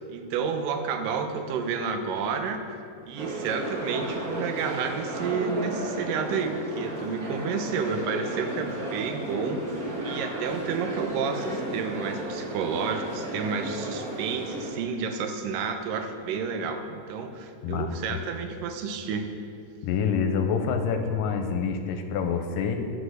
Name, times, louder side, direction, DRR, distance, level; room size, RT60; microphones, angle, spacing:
voice 1, 0.0-2.6 3.0-9.8 10.0-19.3, right 5 dB, 80° right, 6 dB, 2.5 m, -30 dB
sound 1, 3.2-14.7, right 2 dB, 40° right, 1.4 m, -34 dB
voice 2, 17.6-18.0 19.8-22.9, left 6 dB, 80° left, 6 dB, 2.3 m, -27 dB
9.7 x 8.5 x 6.5 m, 2.5 s
omnidirectional pair, 3.9 m